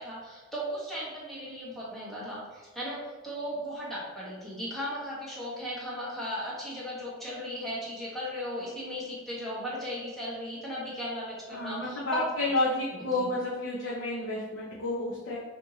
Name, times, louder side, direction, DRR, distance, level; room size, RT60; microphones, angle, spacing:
voice 1, 0.0-12.3 12.9-13.3, equal, ahead, -8 dB, 1.3 m, -36 dB
voice 2, 11.5-15.4, left 2 dB, 60° left, -6 dB, 0.8 m, -30 dB
5.5 x 2.9 x 2.8 m, 1.3 s
head